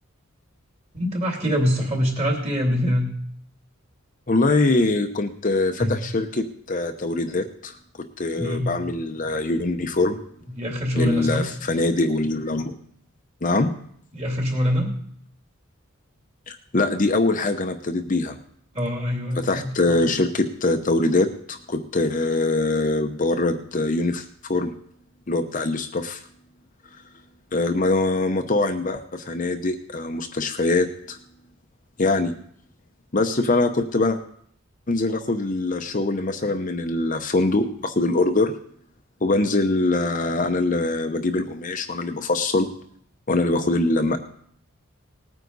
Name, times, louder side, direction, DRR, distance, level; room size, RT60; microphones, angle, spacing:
voice 1, 0.9-3.1 5.8-5.9 8.4-8.7 10.6-11.4 14.1-14.9 18.7-19.7, equal, 30° right, 0 dB, 2.7 m, -24 dB
voice 2, 4.3-7.8 8.2-10.2 10.9-12.8 13.4-13.7 16.5-18.4 19.4-24.7 25.3-26.2 27.5-31.2 32.0-32.3 33.1-34.2 34.9-38.5 39.2-42.7 43.3-44.2, left 2 dB, 40° left, 6 dB, 0.8 m, -23 dB
19.0 x 9.4 x 4.0 m, 0.65 s
head